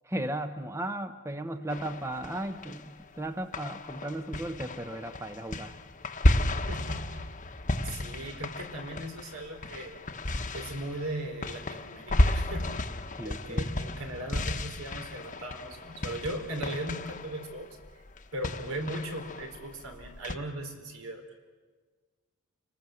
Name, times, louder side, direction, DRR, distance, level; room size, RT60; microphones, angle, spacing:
voice 1, 0.1-5.8 13.1-13.7, right 1 dB, 15° right, 9 dB, 0.8 m, -36 dB
sound 1, 1.7-3.2 3.5-20.3, left 1 dB, 35° left, 1.1 m, -32 dB
voice 2, 6.7-7.3 7.8-10.0 10.5-12.8 13.2-18.0 18.3-21.3, right 1 dB, 80° right, 4 dB, 4.0 m, -38 dB
29.5 x 19.5 x 7.8 m, 1.4 s
head